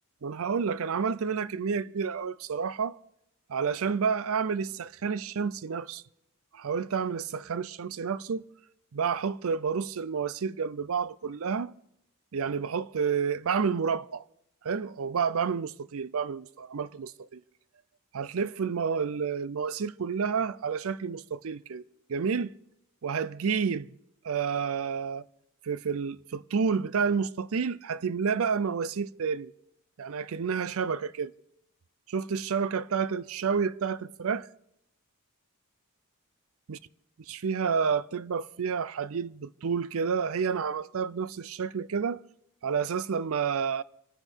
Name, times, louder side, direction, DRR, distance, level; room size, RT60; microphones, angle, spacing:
voice 1, 0.2-3.0 3.5-6.0 6.5-8.4 8.9-11.7 12.3-14.2 14.6-17.4 18.1-21.8 22.1-22.5 23.0-23.9 24.2-25.2 25.6-29.5 30.0-31.3 32.1-34.5 36.7-36.8 37.3-42.2 42.6-43.8, right 6 dB, 65° right, 0.5 m, -30 dB
28.0 x 9.8 x 4.5 m
head